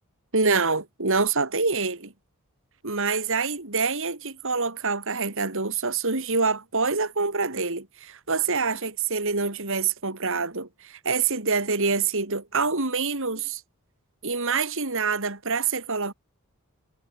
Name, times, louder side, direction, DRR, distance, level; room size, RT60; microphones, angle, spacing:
voice 1, 0.3-2.1 2.8-13.6 14.2-16.1, right 4 dB, 65° right, 3.8 m, -26 dB
head